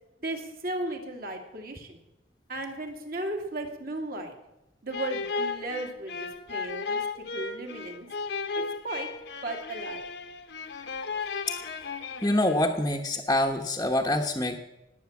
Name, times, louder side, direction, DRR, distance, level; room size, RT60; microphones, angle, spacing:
voice 1, 0.2-2.0 2.5-4.3 4.8-7.0 7.3-8.1 8.5-9.1 9.4-10.0, right 2 dB, 50° right, 3 dB, 2.4 m, -35 dB
sound 1, 4.9-13.0, left 4 dB, 60° left, 1.2 m, -35 dB
voice 2, 12.2-14.6, left 1 dB, 15° left, -2 dB, 1.0 m, -25 dB
19.0 x 8.6 x 7.2 m, 0.94 s
head